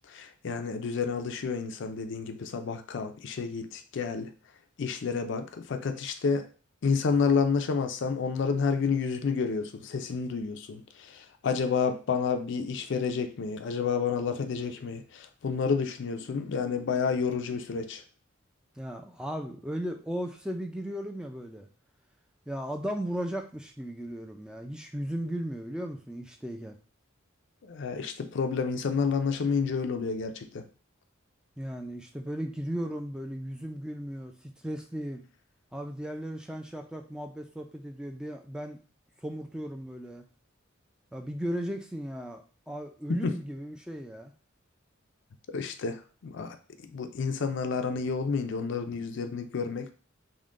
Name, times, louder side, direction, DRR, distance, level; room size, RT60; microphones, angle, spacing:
voice 1, 0.1-4.3 4.8-6.5 6.8-18.0 27.6-30.7 43.1-43.3 45.5-46.6 46.8-49.9, left 5 dB, 60° left, 0.4 m, -30 dB
voice 2, 18.8-21.7 22.5-26.8 31.6-34.3 34.6-35.2 35.7-38.8 39.2-40.2 41.1-44.3, equal, 5° right, 0.3 m, -36 dB
3.6 x 2.1 x 3.6 m
head